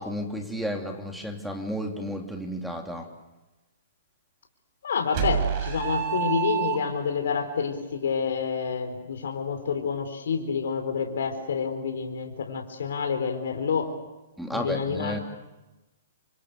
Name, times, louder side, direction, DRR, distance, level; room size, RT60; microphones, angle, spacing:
voice 1, 0.0-3.1 14.4-15.2, equal, ahead, 3 dB, 3.0 m, -32 dB
voice 2, 4.8-13.9 14.5-15.2, left 6 dB, 70° left, 5 dB, 4.2 m, -28 dB
sound 1, 5.1-7.2, right 9 dB, 40° right, 7.2 m, -27 dB
28.5 x 26.0 x 6.8 m, 1.0 s
hypercardioid pair, 130°, 0 cm